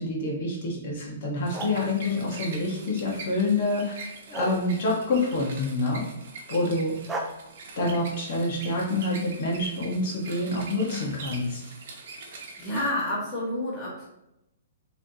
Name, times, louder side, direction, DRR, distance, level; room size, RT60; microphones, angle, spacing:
voice 1, 0.0-6.0 6.5-7.0 7.8-11.6, left 2 dB, 50° left, -3 dB, 1.3 m, -27 dB
sound 1, 1.5-3.1 4.3-5.7 7.1-7.2, right 2 dB, 5° right, 0.5 m, -37 dB
sound 2, 1.5-12.9, right 3 dB, 50° right, 1.0 m, -43 dB
voice 2, 12.6-14.1, left 1 dB, 10° left, -7 dB, 1.1 m, -29 dB
5.1 x 3.4 x 2.8 m, 0.87 s
hypercardioid pair, 155°, 0 cm